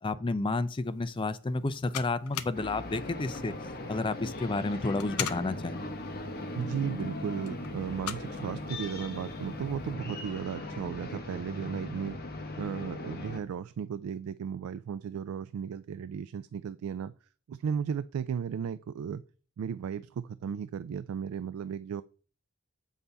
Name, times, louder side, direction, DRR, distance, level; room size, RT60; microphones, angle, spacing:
voice 1, 0.0-3.5 3.9-5.8, left 3 dB, 25° left, 0.4 m, -31 dB
sound 1, 0.7-9.9, left 9 dB, 90° left, 0.6 m, -44 dB
sound 2, 2.5-13.4, left 2 dB, 45° left, 1.0 m, -39 dB
voice 2, 6.6-12.2 12.5-17.1 17.5-19.2 19.6-22.0, right 7 dB, 75° right, 0.3 m, -35 dB
7.3 x 5.4 x 3.4 m
head